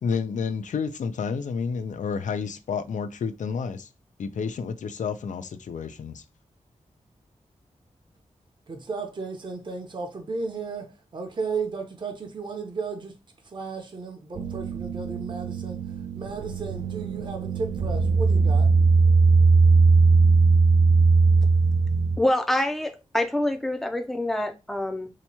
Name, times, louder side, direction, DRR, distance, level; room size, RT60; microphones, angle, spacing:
voice 1, 0.0-3.9 4.2-6.2, left 6 dB, 80° left, 0.4 m, -30 dB
voice 2, 8.7-13.2 13.4-18.7, right 4 dB, 40° right, 0.7 m, -34 dB
sound 1, 14.4-22.2, right 4 dB, 65° right, 0.4 m, -20 dB
voice 3, 22.2-25.1, left 1 dB, ahead, 0.5 m, -26 dB
2.9 x 2.2 x 4.2 m
wide cardioid pair, 130°, 13 cm